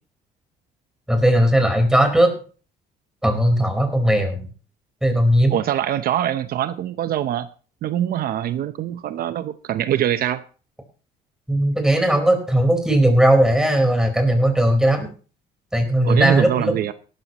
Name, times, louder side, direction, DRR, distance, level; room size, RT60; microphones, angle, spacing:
voice 1, 1.1-2.3 3.2-4.5 5.0-5.6 11.5-15.1 15.7-16.7, right 1 dB, 5° right, 5 dB, 4.5 m, -18 dB
voice 2, 5.5-7.5 7.8-10.4 16.0-16.9, right 11 dB, 60° right, 11 dB, 0.8 m, -23 dB
17.0 x 13.5 x 3.0 m, 0.38 s
cardioid pair, 110°, 17 cm